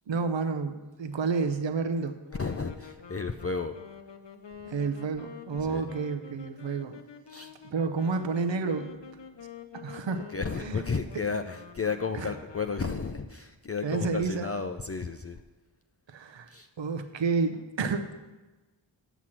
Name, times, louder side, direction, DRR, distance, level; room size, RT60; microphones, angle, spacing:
voice 1, 0.1-2.2 4.6-7.0 7.6-9.0 9.7-10.3 10.6-10.8 11.1-11.2 12.2-12.3 13.8-14.5 16.1-16.5 16.8-18.2, right 4 dB, 65° right, 8 dB, 0.8 m, -30 dB
sound 1, 2.3-13.3, left 7 dB, 65° left, 0.8 m, -48 dB
voice 2, 2.3-3.8 5.6-5.9 7.3-7.5 10.3-15.4 16.5-16.7, left 5 dB, 30° left, 6 dB, 0.5 m, -33 dB
8.1 x 6.0 x 7.3 m, 1.2 s
wide cardioid pair, 45°, 47 cm